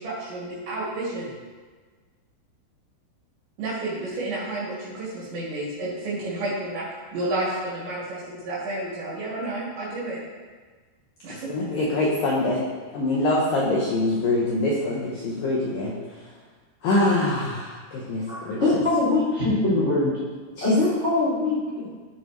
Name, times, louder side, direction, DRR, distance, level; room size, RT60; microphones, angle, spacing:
voice 1, 0.0-1.3 3.6-6.9 7.1-10.2 11.2-11.5, right 2 dB, 70° right, -9 dB, 4.7 m, -31 dB
voice 2, 11.3-12.6 12.9-16.0 16.8-18.6 20.6-20.8, left 2 dB, 75° left, -4 dB, 2.0 m, -24 dB
voice 3, 18.2-20.1 20.6-21.9, left 2 dB, 30° left, -8 dB, 1.2 m, -23 dB
15.0 x 6.4 x 3.2 m, 1.4 s
omnidirectional pair, 5.5 m